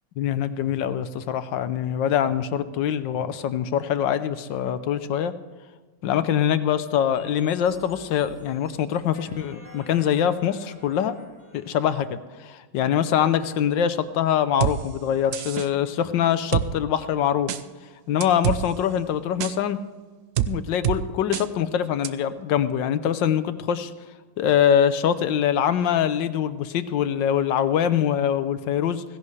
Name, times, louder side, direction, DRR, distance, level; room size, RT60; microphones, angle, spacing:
voice 1, 0.2-5.3 6.0-11.1 11.5-17.5 18.1-19.8 20.5-23.9 24.4-29.0, left 9 dB, 80° left, 12 dB, 1.4 m, -24 dB
sound 1, 7.1-12.1, left 1 dB, 30° left, 3.7 m, -48 dB
sound 2, 14.6-14.8 15.3-15.7 16.5-16.7 17.5-17.6 18.2-18.6 19.4-19.5 20.4-20.5 20.8-21.0 21.3-21.5 22.0-22.1, right 12 dB, 70° right, 0.7 m, -24 dB
17.0 x 16.0 x 3.3 m, 1.3 s
omnidirectional pair, 2.0 m